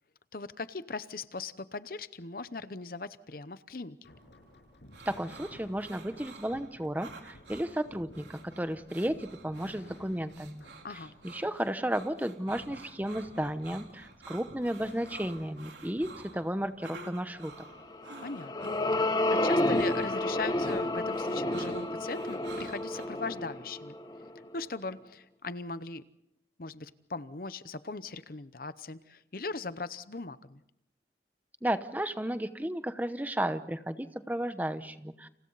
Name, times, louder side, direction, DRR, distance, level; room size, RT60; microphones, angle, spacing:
voice 1, 0.3-4.0 10.8-11.1 18.2-24.0 24.5-26.0 26.6-30.6, left 3 dB, 50° left, 14 dB, 0.8 m, -39 dB
sound 1, 4.0-18.7 18.9-19.0 19.3-19.4 20.0-21.3, left 1 dB, 85° left, 6.8 m, -56 dB
sound 2, 4.9-23.1, right 3 dB, 75° right, 3.6 m, -51 dB
voice 2, 5.1-10.6 11.2-17.5 31.6-35.3, right 1 dB, 10° right, 10 dB, 0.9 m, -33 dB
sound 3, 17.9-24.5, left 1 dB, 25° left, 1.3 m, -30 dB
30.0 x 28.0 x 4.1 m, 0.83 s
head